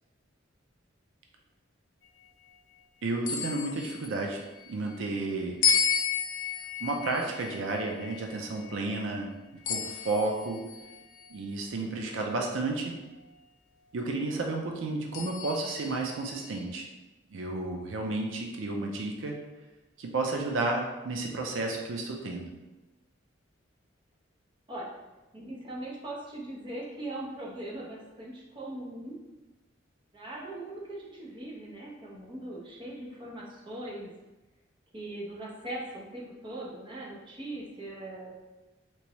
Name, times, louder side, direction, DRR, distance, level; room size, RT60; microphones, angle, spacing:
voice 1, 3.0-4.4 4.7-5.6 6.8-9.3 9.7-10.6 11.3-12.9 13.9-16.9 17.3-19.4 20.0-22.5, right 2 dB, 80° right, 2 dB, 0.5 m, -32 dB
sound 1, 3.3-4.8 5.6-9.1 9.7-11.4 12.1-12.2 15.1-16.6, left 6 dB, 70° left, 0.4 m, -33 dB
voice 2, 25.3-29.2 30.1-34.1 34.9-38.3, right 1 dB, 25° right, -4 dB, 0.7 m, -40 dB
3.4 x 3.0 x 3.0 m, 1.1 s
head